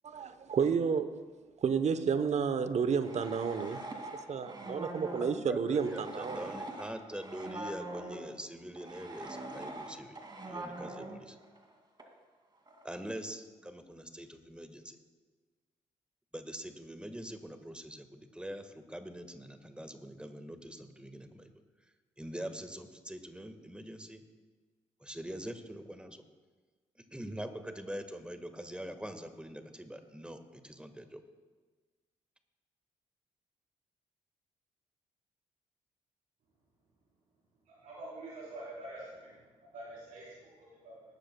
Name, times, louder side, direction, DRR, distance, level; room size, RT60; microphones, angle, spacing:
voice 1, 0.0-1.1 1.6-3.8 4.3-6.4, right 6 dB, 50° right, 11 dB, 1.0 m, -31 dB
sound 1, 2.6-8.3 8.7-11.7 12.0-12.1 12.7-12.9, right 1 dB, 30° right, 2.5 m, -43 dB
voice 2, 5.2-10.2 10.4-11.4 12.8-15.0 16.3-21.6 22.2-24.2 25.0-26.2 27.1-31.2, right 1 dB, 5° right, 8 dB, 1.6 m, -43 dB
voice 3, 37.7-39.4 39.7-41.0, right 1 dB, 65° right, -9 dB, 4.1 m, -46 dB
20.0 x 12.0 x 2.3 m, 1.4 s
hypercardioid pair, 40°, 15 cm